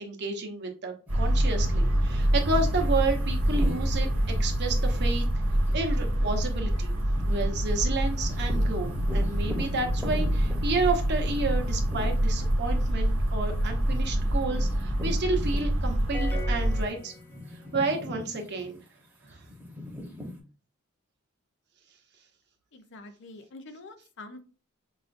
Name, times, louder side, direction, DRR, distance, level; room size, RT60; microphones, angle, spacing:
voice 1, 0.0-4.1 4.4-5.3 5.7-7.0 7.2-17.1 17.7-18.8 19.2-19.4, right 3 dB, 55° right, 3 dB, 0.8 m, -31 dB
sound 1, 1.1-16.2 16.6-20.4, left 1 dB, 10° right, 0.9 m, -43 dB
sound 2, 1.1-16.9, right 1 dB, 75° right, 1.1 m, -26 dB
sound 3, 16.1-17.9, left 2 dB, 10° left, 0.5 m, -41 dB
voice 2, 22.7-24.4, left 2 dB, 60° left, 7 dB, 0.6 m, -46 dB
4.8 x 2.4 x 2.5 m, 0.36 s
head